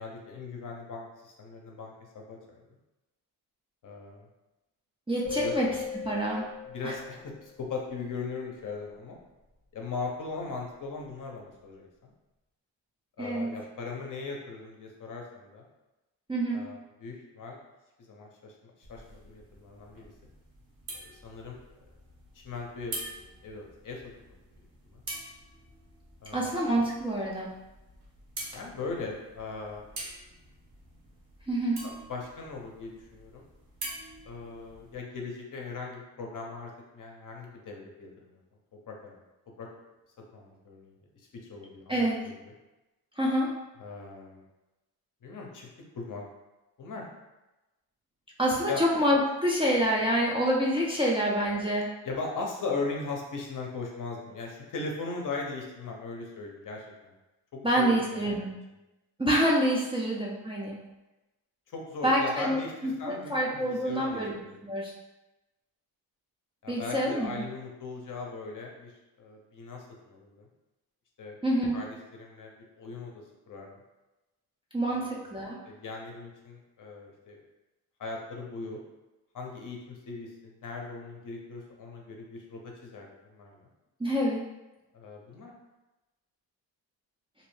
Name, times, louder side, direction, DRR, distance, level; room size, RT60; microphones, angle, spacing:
voice 1, 0.0-2.4 3.8-4.3 5.4-5.5 6.7-9.2 9.7-12.1 13.2-15.6 16.5-17.6 18.0-20.1 21.0-21.6 22.3-22.9 23.2-24.3 24.9-25.0 26.2-26.5 28.5-29.8 31.8-33.4 34.3-38.4 38.9-39.2 39.6-39.7 40.3-40.9 41.5-42.0 43.8-44.4 45.2-45.7 45.9-46.2 46.8-47.0 48.7-48.8 52.0-57.1 57.5-58.2 61.7-64.6 66.6-68.9 69.2-70.5 71.2-71.4 71.7-71.9 72.1-73.1 73.5-73.7 74.9-75.2 75.6-77.4 78.0-78.8 79.3-83.7 84.9-85.5, left 4 dB, 45° left, 0 dB, 0.7 m, -39 dB
voice 2, 5.1-5.7 6.0-6.4 6.8-7.0 13.2-13.6 16.3-16.7 26.3-27.6 31.5-31.9 41.9-42.2 43.2-43.6 48.4-51.9 57.6-58.5 59.2-60.8 62.0-64.9 66.7-67.4 71.4-71.8 74.7-75.6 84.0-84.4, equal, 10° right, -5 dB, 0.5 m, -27 dB
sound 1, 5.2-7.5, left 6 dB, 85° right, 1.1 m, -37 dB
sound 2, 18.8-35.0, right 2 dB, 55° right, 1.0 m, -46 dB
2.7 x 2.0 x 3.1 m, 1.0 s
supercardioid pair, 65°, 44 cm